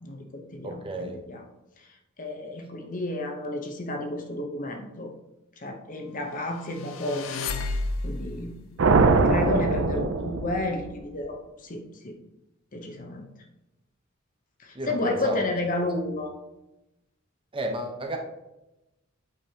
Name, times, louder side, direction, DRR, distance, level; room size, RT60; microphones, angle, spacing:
voice 1, 0.0-1.4 1.8-5.1 5.6-7.8 8.0-8.7 9.2-12.2 12.7-13.3 14.6-16.3, left 2 dB, 40° left, 4 dB, 0.8 m, -32 dB
voice 2, 0.6-1.2 9.7-9.9 14.7-15.5 17.5-18.2, right 1 dB, 25° right, 2 dB, 0.8 m, -33 dB
sound 1, 6.6-8.4, left 3 dB, 65° left, 0.6 m, -31 dB
sound 2, 8.8-11.0, right 4 dB, 60° right, 0.5 m, -22 dB
8.4 x 5.3 x 2.8 m, 0.94 s
head